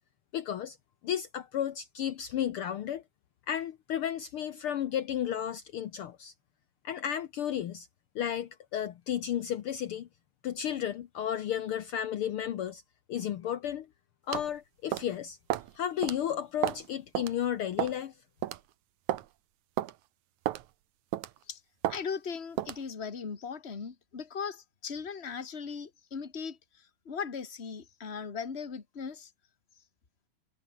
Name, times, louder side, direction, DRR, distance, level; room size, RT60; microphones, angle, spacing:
voice 1, 0.3-0.8 1.0-3.0 3.5-6.3 6.8-7.9 8.1-10.1 10.4-12.8 13.1-13.9 14.3-15.4 15.7-18.1, left 10 dB, 80° left, 1.2 m, -33 dB
sound 1, 14.3-14.5 14.9-15.1 15.5-15.7 16.0-16.2 16.6-16.9 17.1-17.3 17.8-18.0 18.4-18.6 19.1-19.3 19.8-19.9 20.5-20.6 21.1-21.4 21.8-22.0 22.6-22.8, right 14 dB, 70° right, 2.2 m, -31 dB
voice 2, 21.9-29.3, left 6 dB, 25° left, 1.5 m, -38 dB
omnidirectional pair, 3.9 m